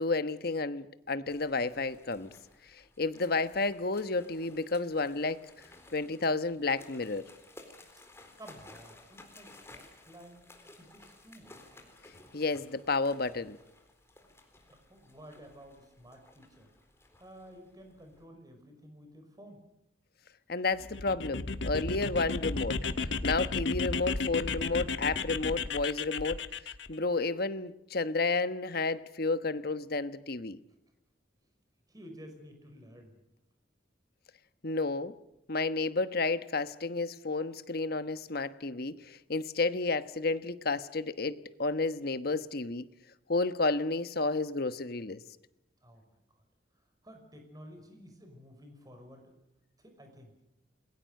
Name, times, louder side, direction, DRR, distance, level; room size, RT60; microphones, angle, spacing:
voice 1, 0.0-2.3 3.0-5.4 5.9-7.2 12.3-13.6 20.5-22.8 23.2-26.4 26.9-30.6 34.6-35.1 35.5-42.8 43.3-45.2, left 3 dB, 60° left, 1.2 m, -31 dB
sound 1, 1.3-18.3, left 2 dB, 15° left, 3.9 m, -56 dB
voice 2, 8.4-10.4 10.7-11.5 14.7-16.7 17.2-19.6 31.9-33.2 45.8-46.0 46.3-46.4 47.0-49.3 49.8-50.3, equal, 20° right, 5.6 m, -52 dB
sound 2, 20.8-26.9, left 4 dB, 90° left, 1.4 m, -33 dB
28.5 x 21.5 x 6.6 m
head